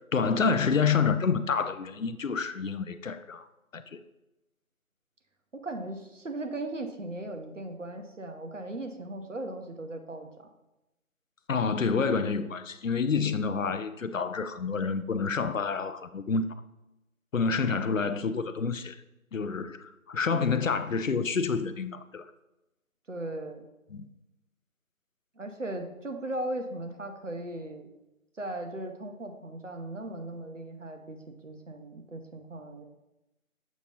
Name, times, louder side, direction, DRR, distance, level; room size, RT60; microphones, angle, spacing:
voice 1, 0.1-3.5 3.7-3.8 11.5-16.4 17.3-19.0 19.3-22.3 23.9-24.1, left 5 dB, 65° left, 0.5 m, -28 dB
voice 2, 5.5-10.5 23.1-23.7 25.4-27.9 28.4-32.8, right 1 dB, 60° right, 0.9 m, -38 dB
7.3 x 3.1 x 5.2 m
figure-of-eight pair, 170°, 43 cm